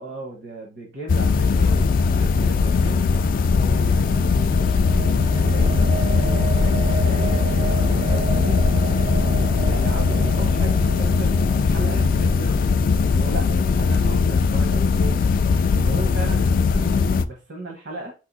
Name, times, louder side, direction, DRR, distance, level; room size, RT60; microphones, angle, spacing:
voice 1, 0.0-3.1 3.5-8.6 9.2-18.1, right 2 dB, 70° right, 0 dB, 1.0 m, -36 dB
sound 1, 1.1-17.2, left 4 dB, 50° left, 0.3 m, -19 dB
sound 2, 3.1-13.3, right 5 dB, 40° right, 0.3 m, -32 dB
4.5 x 2.4 x 4.0 m, 0.32 s
head